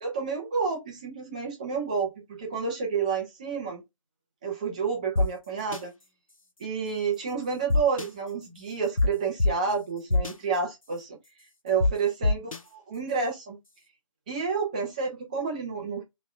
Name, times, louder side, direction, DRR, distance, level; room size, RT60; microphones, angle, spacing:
voice 1, 0.0-3.8 4.4-5.9 6.6-11.2 11.6-13.6 14.3-16.0, right 5 dB, 15° right, 0.6 m, -30 dB
sound 1, 5.2-5.3 5.7-5.8 7.7-8.1 9.0-9.1 9.4-9.5 10.1-10.3 11.8-11.9 12.2-12.6, left 2 dB, 90° left, 0.8 m, -22 dB
3.4 x 3.1 x 3.2 m
figure-of-eight pair, 160°, 17 cm